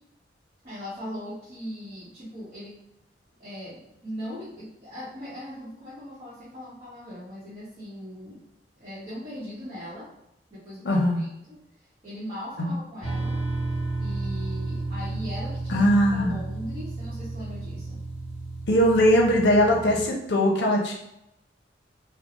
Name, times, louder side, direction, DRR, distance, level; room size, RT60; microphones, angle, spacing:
voice 1, 0.6-2.8 3.4-8.4 8.8-10.1 10.5-11.6 12.0-13.4 14.0-18.1, equal, 40° right, -12 dB, 0.9 m, -39 dB
voice 2, 10.8-11.2 12.6-12.8 15.7-16.4 18.7-20.9, equal, 65° left, 1 dB, 0.6 m, -20 dB
sound 1, 13.0-20.1, right 2 dB, 35° left, 1.2 m, -32 dB
3.0 x 2.0 x 2.4 m, 0.83 s
head